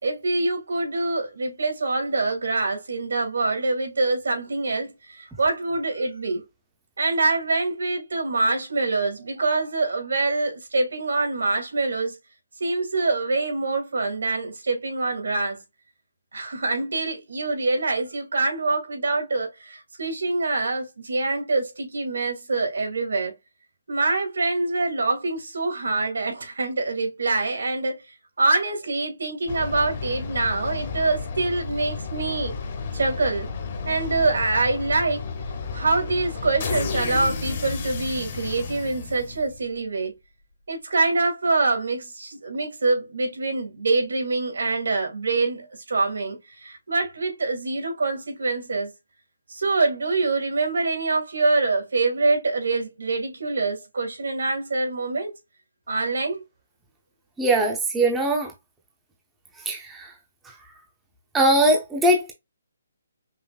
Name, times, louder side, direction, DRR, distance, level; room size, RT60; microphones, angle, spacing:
voice 1, 0.0-6.4 7.0-12.2 12.6-15.6 16.3-23.3 23.9-28.0 28.4-32.5 32.9-33.5 33.9-35.2 35.7-40.2 40.7-48.9 49.5-55.3 55.9-56.4, right 3 dB, 85° right, 2.1 m, -25 dB
sound 1, 29.5-39.7, left 4 dB, 25° left, 0.8 m, -32 dB
voice 2, 57.4-58.5 59.7-60.1 61.3-62.3, right 1 dB, 5° right, 0.5 m, -21 dB
5.5 x 2.4 x 2.3 m
hypercardioid pair, 180°, 0 cm